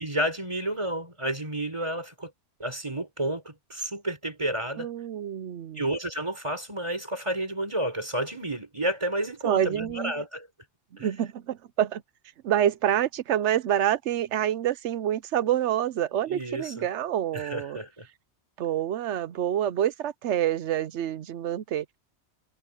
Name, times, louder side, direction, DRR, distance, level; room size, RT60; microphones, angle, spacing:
voice 1, 0.0-2.3 2.6-4.9 5.8-10.5 11.0-11.1 16.3-16.8 17.3-18.1, right 1 dB, 25° right, 4.4 m, -31 dB
voice 2, 4.8-5.8 9.4-10.1 11.0-12.0 12.4-17.8 18.6-22.0, right 11 dB, 85° right, 1.0 m, -27 dB
omnidirectional pair, 1.2 m